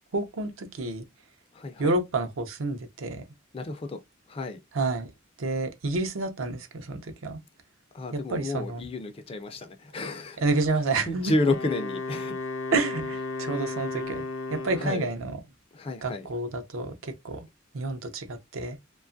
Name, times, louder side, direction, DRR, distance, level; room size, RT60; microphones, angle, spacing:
voice 1, 0.1-1.1 1.8-3.2 4.7-5.1 5.4-7.4 8.1-8.8 10.4-11.3 12.7-14.2 14.5-15.4 16.0-17.5 17.7-18.8, right 3 dB, 70° right, 0.6 m, -29 dB
voice 2, 1.5-1.9 3.5-4.0 4.3-4.6 7.9-10.4 11.1-12.3 14.7-15.1 15.7-16.3, left 2 dB, 30° left, 0.3 m, -31 dB
Wind instrument woodwind instrument, 11.4-15.1, left 3 dB, 85° left, 0.5 m, -34 dB
2.7 x 2.3 x 2.5 m
head